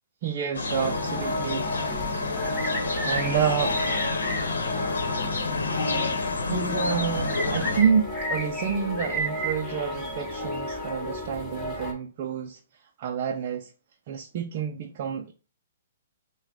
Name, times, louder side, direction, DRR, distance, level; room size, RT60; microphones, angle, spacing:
voice 1, 0.2-1.8 2.7-3.8 6.5-13.7 14.1-15.3, right 7 dB, 45° right, 0.5 m, -29 dB
sound 1, 0.5-7.8, left 3 dB, 90° left, 0.9 m, -29 dB
sound 2, 0.7-11.9, left 1 dB, 5° left, 1.5 m, -32 dB
5.9 x 2.3 x 3.7 m
hypercardioid pair, 145°, 0 cm